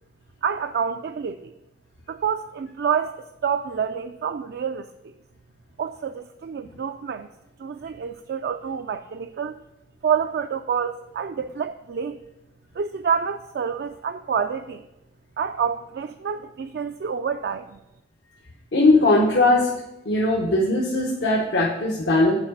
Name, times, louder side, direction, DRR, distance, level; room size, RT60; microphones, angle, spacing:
voice 1, 0.4-1.5 2.1-5.1 5.8-7.3 7.6-9.6 10.0-12.2 12.8-14.8 15.4-17.8, right 7 dB, 65° right, 8 dB, 0.3 m, -28 dB
voice 2, 18.7-19.7 20.0-22.4, left 2 dB, 85° left, -2 dB, 1.0 m, -19 dB
7.3 x 4.7 x 6.5 m, 0.94 s
head